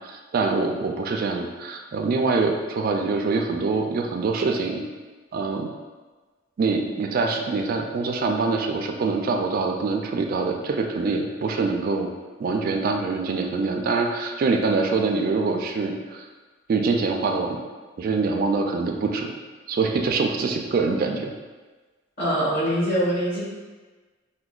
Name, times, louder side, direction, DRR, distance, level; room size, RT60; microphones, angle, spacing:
voice 1, 0.0-4.8 5.3-5.7 6.6-12.1 12.4-16.2 16.7-17.6 18.0-19.3 19.7-21.3, right 4 dB, 50° right, 3 dB, 0.3 m, -24 dB
voice 2, 22.2-23.4, equal, 60° left, -7 dB, 1.4 m, -23 dB
5.8 x 2.1 x 2.3 m, 1.3 s
head